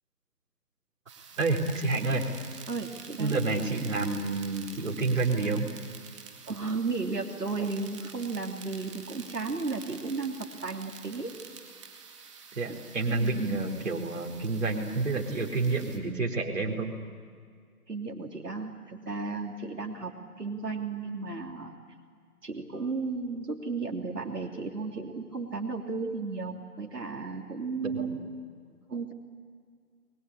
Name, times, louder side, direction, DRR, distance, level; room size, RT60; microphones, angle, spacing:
sound 1, 1.1-16.0, right 6 dB, 20° right, 2.1 m, -48 dB
voice 1, 1.4-2.2 3.2-5.7 12.5-16.9 27.8-28.2, right 3 dB, 55° right, 1 dB, 4.1 m, -29 dB
voice 2, 2.7-3.4 6.5-11.3 12.7-12.8 13.1-13.3 17.9-21.7 22.4-28.2 28.7-29.1, right 4 dB, 90° right, 1 dB, 3.2 m, -34 dB
29.0 x 22.0 x 8.6 m, 2.1 s
figure-of-eight pair, 160°, 46 cm